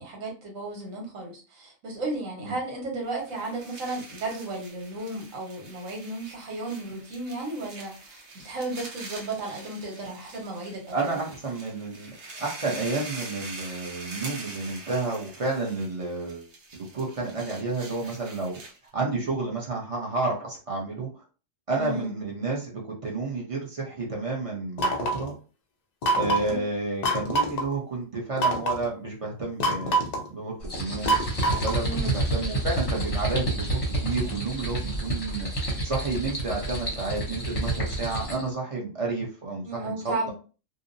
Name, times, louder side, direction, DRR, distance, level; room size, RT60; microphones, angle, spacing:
voice 1, 0.0-11.0 21.7-22.1 26.2-26.6 31.8-32.2 39.6-40.3, right 2 dB, 80° right, 0 dB, 1.4 m, -34 dB
sound 1, 3.1-18.9, right 2 dB, 60° right, 1.0 m, -44 dB
voice 2, 10.9-12.1 12.4-18.6 18.9-21.2 21.7-25.4 26.2-30.0 30.3-31.2 31.6-35.5 35.8-40.3, right 3 dB, 35° right, -2 dB, 0.6 m, -31 dB
sound 2, 24.8-25.3 26.0-26.5 27.0-27.6 28.4-28.8 29.6-30.3 31.1-31.9, right 2 dB, 80° left, 0.3 m, -25 dB
sound 3, 30.6-38.5, right 2 dB, 35° left, 0.7 m, -29 dB
2.7 x 2.0 x 2.5 m, 0.35 s
omnidirectional pair, 1.3 m